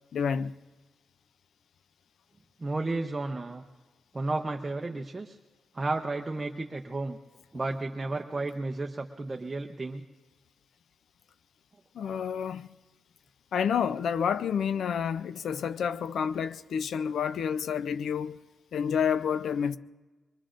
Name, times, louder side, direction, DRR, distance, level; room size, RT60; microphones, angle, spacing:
voice 1, 0.1-0.5 11.9-12.7 13.5-18.4 18.7-19.8, left 7 dB, 75° left, 0.4 m, -29 dB
voice 2, 2.6-3.6 4.1-5.4 5.7-7.2 7.5-10.0, right 2 dB, 20° right, 0.6 m, -32 dB
24.0 x 22.5 x 2.5 m
wide cardioid pair, 155°, 0 cm